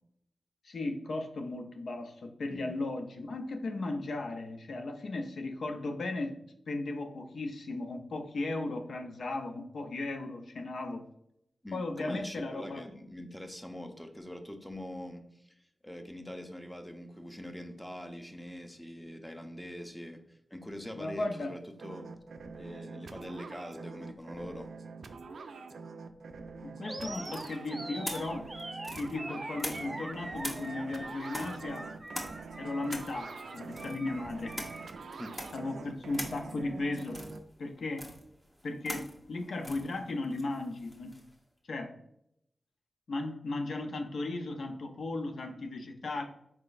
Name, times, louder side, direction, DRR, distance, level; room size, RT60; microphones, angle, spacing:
voice 1, 0.6-6.4 6.7-11.0 11.7-12.8 20.9-21.5 26.6-28.5 28.9-31.9 32.6-34.6 35.5-37.2 37.6-38.1 38.6-41.1 41.7-42.0 43.1-46.2, left 2 dB, 80° left, 4 dB, 0.4 m, -36 dB
voice 2, 11.6-15.6 15.8-22.1 22.6-24.7 35.2-35.3, left 1 dB, 10° left, 6 dB, 0.7 m, -43 dB
sound 1, 21.8-37.4, right 4 dB, 90° right, 0.3 m, -45 dB
Animal, 26.8-35.0, right 1 dB, 30° right, 0.5 m, -43 dB
sound 2, 27.2-30.1 30.4-41.3, equal, 25° left, 1.0 m, -43 dB
4.3 x 3.7 x 2.4 m, 0.76 s
cardioid pair, 45°, 0 cm